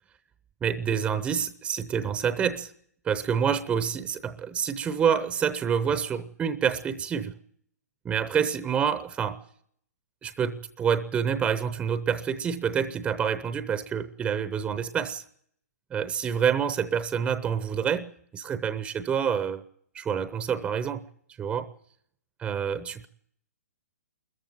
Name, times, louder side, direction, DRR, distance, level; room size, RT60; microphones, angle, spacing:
voice 1, 0.6-2.7 3.0-7.3 8.0-9.4 10.2-15.2 15.9-19.6 19.9-21.1 21.4-21.7 22.4-23.1, right 7 dB, 10° right, 13 dB, 0.8 m, -27 dB
22.5 x 14.5 x 9.1 m, 0.64 s
figure-of-eight pair, 120°, 9 cm